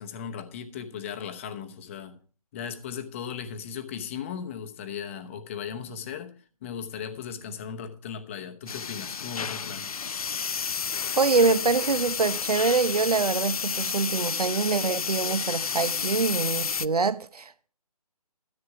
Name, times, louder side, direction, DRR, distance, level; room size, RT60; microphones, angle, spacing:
voice 1, 0.0-2.2 2.5-6.3 6.6-9.9, left 7 dB, 20° left, 0.9 m, -37 dB
sound 1, 8.7-16.9, left 6 dB, 70° left, 0.5 m, -31 dB
voice 2, 11.2-17.7, right 4 dB, 75° right, 0.8 m, -25 dB
13.0 x 7.9 x 4.8 m
figure-of-eight pair, 150°, 20 cm